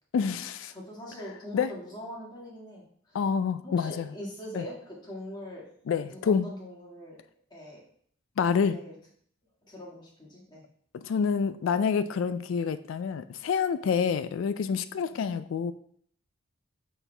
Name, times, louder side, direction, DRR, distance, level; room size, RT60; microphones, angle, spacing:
voice 1, 0.1-0.7 1.5-1.7 3.1-4.1 4.6-4.7 5.9-6.5 8.4-8.8 11.0-15.7, left 6 dB, 85° left, 12 dB, 0.3 m, -27 dB
voice 2, 0.7-3.2 3.6-5.6 6.0-7.2 7.5-7.8 8.7-9.0 9.7-10.7 15.1-15.4, left 1 dB, 25° left, -4 dB, 1.7 m, -42 dB
6.9 x 4.4 x 3.3 m, 0.63 s
head